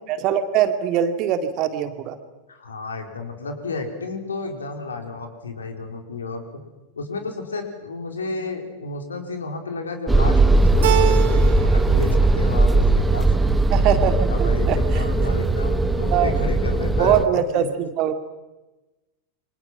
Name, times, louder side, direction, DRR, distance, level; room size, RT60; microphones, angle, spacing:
voice 1, 0.1-2.2 13.7-15.0 16.1-16.3 16.8-18.1, right 9 dB, 40° right, 8 dB, 2.5 m, -22 dB
voice 2, 2.5-6.4 7.0-13.3 14.3-17.3 17.5-17.7, left 3 dB, 70° left, 5 dB, 4.3 m, -32 dB
sound 1, 10.1-17.2, right 2 dB, 10° right, 1.5 m, -19 dB
Keyboard (musical), 10.8-11.9 12.2-13.0, right 13 dB, 55° right, 3.0 m, -25 dB
29.0 x 25.5 x 6.0 m, 1.1 s
figure-of-eight pair, 90°, 0 cm